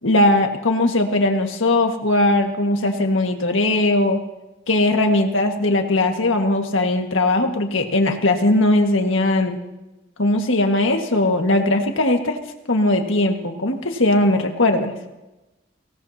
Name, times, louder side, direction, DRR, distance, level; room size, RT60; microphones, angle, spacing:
voice 1, 0.0-4.2 4.7-9.6 10.2-12.4 12.7-14.9, left 2 dB, 90° left, 4 dB, 1.7 m, -19 dB
23.5 x 18.0 x 2.8 m, 1.0 s
head